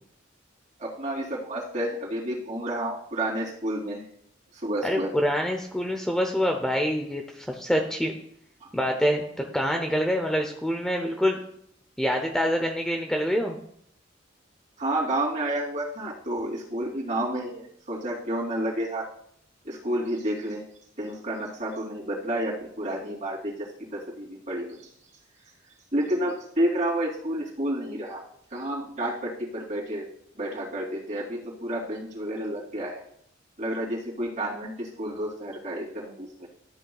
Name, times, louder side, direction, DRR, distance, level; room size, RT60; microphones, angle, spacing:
voice 1, 0.8-4.0 4.6-5.1 8.6-8.7 14.8-19.1 19.6-20.6 21.0-24.8 25.9-28.2 28.5-30.1 30.3-33.0 33.6-36.5, right 1 dB, 40° right, -4 dB, 3.0 m, -30 dB
voice 2, 4.8-8.1 8.7-9.2 9.5-11.4 12.0-13.6, equal, 5° left, 2 dB, 0.7 m, -26 dB
13.0 x 8.4 x 2.4 m, 0.67 s
head